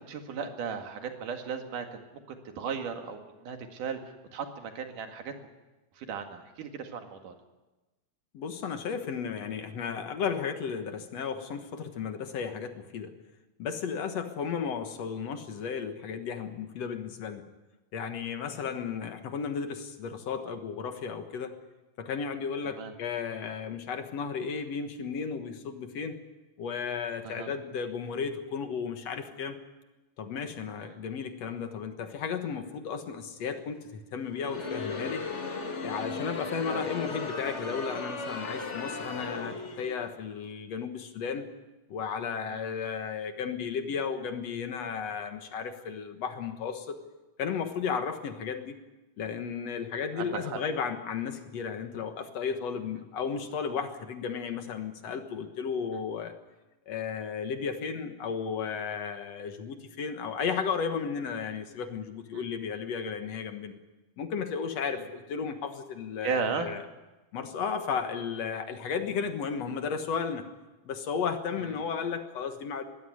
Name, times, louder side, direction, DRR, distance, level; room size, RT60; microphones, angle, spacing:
voice 1, 0.1-5.3 5.9-7.3 22.7-22.9 27.2-27.5 30.8-31.0 36.7-36.9 39.1-39.2 42.5-42.7 50.1-50.6 62.3-62.4 64.9-65.0 66.2-66.7 71.6-71.7, right 6 dB, 90° right, 5 dB, 3.5 m, -36 dB
voice 2, 8.3-13.1 13.6-17.4 17.9-21.6 22.0-26.2 26.6-29.6 30.2-35.2 35.8-41.5 41.9-47.0 47.4-48.8 49.2-56.3 56.9-63.7 64.2-66.8 67.3-70.5 70.9-72.8, left 6 dB, 60° left, 7 dB, 2.4 m, -34 dB
Crowd, 34.3-40.0, left 3 dB, 35° left, 1.2 m, -36 dB
21.5 x 15.5 x 9.5 m, 1.1 s
omnidirectional pair, 3.5 m